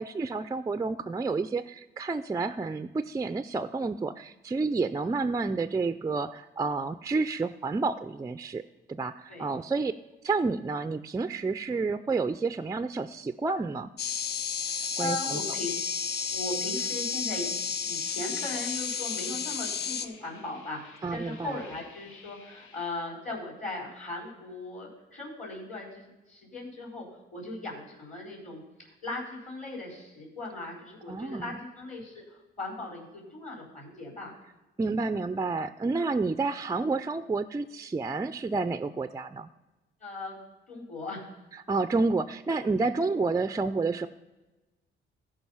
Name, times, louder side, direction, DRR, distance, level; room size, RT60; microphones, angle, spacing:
voice 1, 0.0-8.6 8.9-9.9 10.2-13.9 15.0-15.4 21.0-21.6 31.1-31.6 34.8-39.5 41.7-44.1, right 3 dB, 15° right, 11 dB, 0.4 m, -30 dB
sound 1, 14.0-20.1, left 6 dB, 55° left, 0.7 m, -32 dB
voice 2, 14.7-15.7 16.3-17.5 17.8-34.3 40.0-40.4 40.7-41.4, left 2 dB, 40° left, -9 dB, 4.4 m, -38 dB
sound 2, 15.6-22.9, left 5 dB, 90° left, 1.1 m, -53 dB
15.0 x 5.1 x 5.6 m, 1.1 s
cardioid pair, 90°, 20 cm